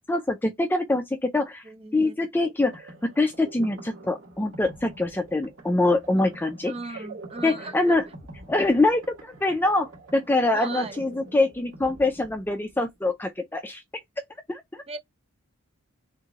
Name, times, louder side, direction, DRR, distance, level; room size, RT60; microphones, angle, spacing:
voice 1, 0.1-1.6 1.9-6.7 7.4-8.1 8.5-13.8 14.5-14.8, left 2 dB, 10° left, 0.4 m, -24 dB
voice 2, 1.6-2.2 6.1-6.4 6.7-7.9 10.5-11.0 14.9-15.0, right 3 dB, 25° right, 0.8 m, -38 dB
sound 1, 2.4-13.0, right 2 dB, 60° right, 2.1 m, -46 dB
3.6 x 3.1 x 3.6 m
head